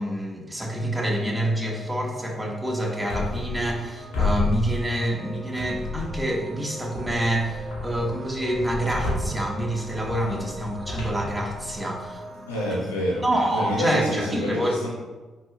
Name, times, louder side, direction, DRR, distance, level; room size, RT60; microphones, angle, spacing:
voice 1, 0.0-12.2 13.2-14.8, right 1 dB, 10° right, -1 dB, 2.2 m, -27 dB
sound 1, 0.5-12.8, right 1 dB, 45° right, 2.0 m, -41 dB
sound 2, 3.1-3.9 4.1-5.2 5.6-6.4 6.9-12.0, left 2 dB, 70° left, 2.1 m, -31 dB
voice 2, 12.5-14.9, equal, 85° left, -5 dB, 1.7 m, -28 dB
10.0 x 4.7 x 3.4 m, 1.2 s
hypercardioid pair, 40°, 0 cm